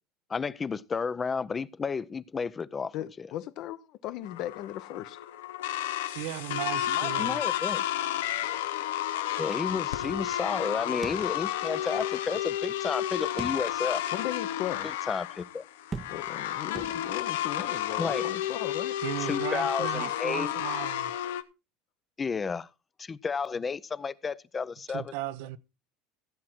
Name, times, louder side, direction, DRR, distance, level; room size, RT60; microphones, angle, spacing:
voice 1, 0.3-3.3 6.9-7.8 9.4-14.0 15.1-15.6 18.0-18.3 19.3-20.5 22.2-22.7 23.0-25.1, left 5 dB, 20° left, 0.6 m, -32 dB
voice 2, 2.9-5.2 14.1-14.9 16.1-19.0, left 13 dB, 55° left, 0.9 m, -37 dB
sound 1, 4.2-21.4, left 12 dB, 90° left, 0.9 m, -32 dB
voice 3, 6.1-7.4 19.0-21.1 24.9-25.6, right 15 dB, 75° right, 0.8 m, -36 dB
sound 2, 11.0-11.9 12.2-12.3 13.4-14.0 14.5-14.6 15.9-16.5 16.8-17.4, right 5 dB, 20° right, 0.7 m, -41 dB
15.5 x 7.6 x 4.4 m
supercardioid pair, 125°, 0 cm